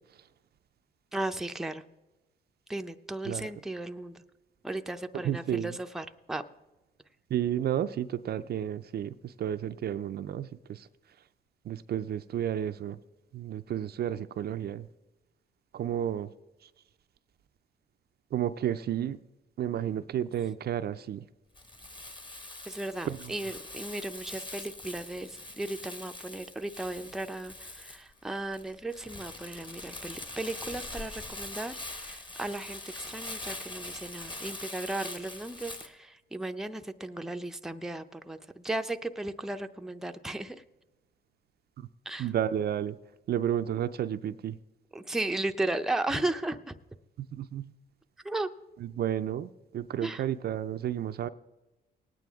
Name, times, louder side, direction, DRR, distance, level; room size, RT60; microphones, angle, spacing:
voice 1, 1.1-1.8 2.7-4.2 4.6-6.4 22.7-40.6 42.1-42.3 44.9-46.8 48.2-48.5 50.0-50.2, right 2 dB, ahead, 6 dB, 0.5 m, -35 dB
voice 2, 5.2-5.8 7.3-10.9 11.7-13.0 13.3-14.9 15.7-16.3 18.3-19.2 19.6-21.2 23.1-23.3 41.8-41.9 42.2-43.0 43.3-44.6 47.2-47.7 48.8-51.3, right 10 dB, 55° right, 10 dB, 0.4 m, -32 dB
Crumpling crinkling, 21.5-35.9, left 2 dB, 25° left, 1.3 m, -43 dB
19.0 x 9.2 x 3.5 m, 1.1 s
cardioid pair, 90°, 20 cm